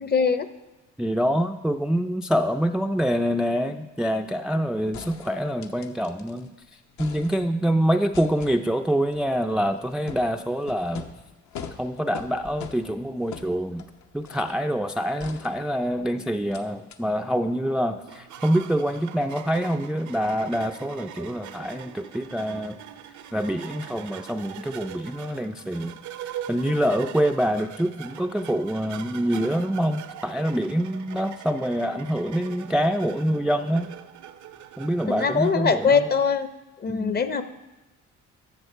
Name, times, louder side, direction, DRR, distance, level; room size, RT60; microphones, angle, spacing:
voice 1, 0.0-0.5 35.1-36.5 36.8-37.4, left 5 dB, 35° left, 11 dB, 0.6 m, -22 dB
voice 2, 1.0-6.5 7.0-11.0 11.8-13.9 14.1-22.8 23.3-25.9 26.5-33.9 34.8-36.1 36.9-37.2, equal, 5° right, 6 dB, 0.3 m, -25 dB
sound 1, 4.9-6.5 6.8-7.7 8.1-14.7 15.2-16.1 16.5-16.6 16.9-17.0, left 6 dB, 70° left, 0.8 m, -43 dB
sound 2, 18.1-35.9, right 10 dB, 70° right, 0.6 m, -42 dB
13.5 x 6.5 x 4.5 m, 1.0 s
cardioid pair, 90°, 30 cm